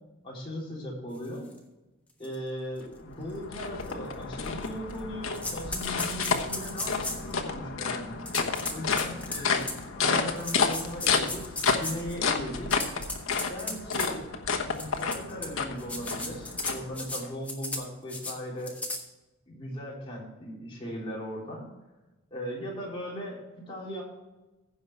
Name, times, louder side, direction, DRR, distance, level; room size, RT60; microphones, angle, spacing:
voice 1, 0.2-1.5 2.2-8.2 8.7-12.9 13.5-14.3 14.7-18.8 19.5-21.7 22.3-24.0, equal, 25° left, -5 dB, 3.7 m, -38 dB
sound 1, 1.5-1.6 2.2-2.4 2.8-2.9 3.8-3.9 4.5-5.0 5.3-7.3 8.3-9.8 10.4-12.2 12.6-14.1 14.7-15.5 15.8-17.2 17.5-17.8 18.1-18.3 18.6-19.0, left 2 dB, 5° left, 1.3 m, -35 dB
sound 2, 2.8-17.3, left 5 dB, 85° left, 1.1 m, -31 dB
15.5 x 5.6 x 4.7 m, 1.1 s
head